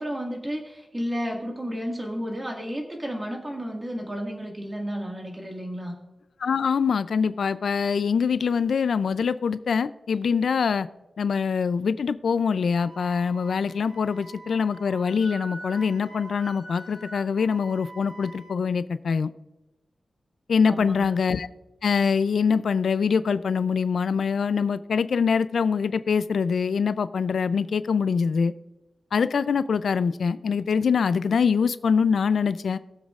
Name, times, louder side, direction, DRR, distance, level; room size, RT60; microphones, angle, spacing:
voice 1, 0.0-5.9 20.7-21.1, equal, 20° right, 1 dB, 1.7 m, -32 dB
voice 2, 6.4-10.9 11.2-19.3 20.5-21.5 21.8-28.5 29.1-32.8, left 6 dB, 80° left, 14 dB, 0.3 m, -24 dB
Wind instrument woodwind instrument, 12.8-18.6, right 1 dB, 90° right, 2.3 m, -44 dB
21.0 x 7.4 x 2.4 m, 1.0 s
wide cardioid pair, 140°, 0 cm